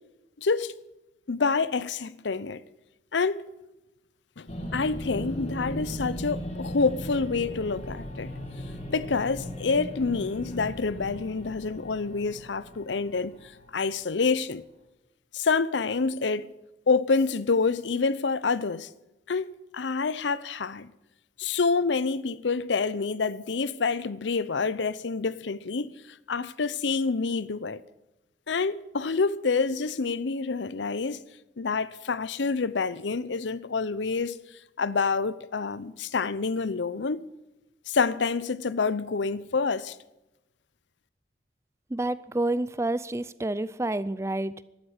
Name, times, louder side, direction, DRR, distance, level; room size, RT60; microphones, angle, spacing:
voice 1, 0.4-0.7 1.3-2.6 3.1-3.4 4.4-8.3 8.9-13.4 13.7-14.6 15.3-16.5 16.9-18.9 19.3-20.9 21.4-27.8 28.5-31.2 31.6-34.4 34.8-37.2 37.9-40.0, left 4 dB, 80° left, 0.7 m, -27 dB
sound 1, 4.5-13.9, equal, 35° left, 2.5 m, -38 dB
voice 2, 41.9-44.6, right 2 dB, 15° right, 0.4 m, -29 dB
12.5 x 12.5 x 8.8 m
head